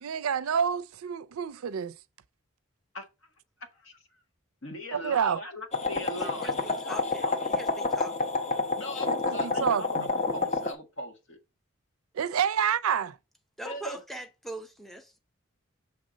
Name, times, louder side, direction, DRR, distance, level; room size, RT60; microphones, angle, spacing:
voice 1, 0.0-1.9 4.9-5.4 9.1-10.1 12.1-13.2, right 7 dB, 85° right, 0.4 m, -28 dB
voice 2, 4.6-6.6 6.9-7.4 8.8-11.4 13.6-14.0, left 1 dB, 65° left, 1.4 m, -39 dB
sound 1, 5.7-10.7, left 3 dB, 30° left, 0.8 m, -29 dB
voice 3, 6.2-8.3 13.6-15.1, right 1 dB, ahead, 0.6 m, -42 dB
6.5 x 3.4 x 5.0 m
head